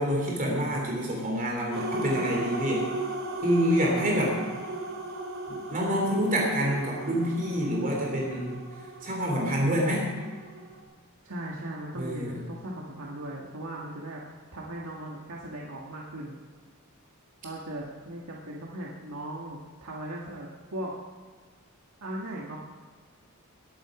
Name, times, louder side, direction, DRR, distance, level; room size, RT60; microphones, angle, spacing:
voice 1, 0.0-2.9 3.4-4.4 5.5-8.6 9.0-10.1 12.0-12.4, equal, 40° right, -1 dB, 3.2 m, -27 dB
sound 1, 1.7-10.8, right 2 dB, 65° right, 2.7 m, -37 dB
voice 2, 11.2-14.2 14.5-16.4 17.4-21.0 22.0-22.6, right 1 dB, 85° right, -3 dB, 1.8 m, -38 dB
20.0 x 9.2 x 5.0 m, 1.5 s
head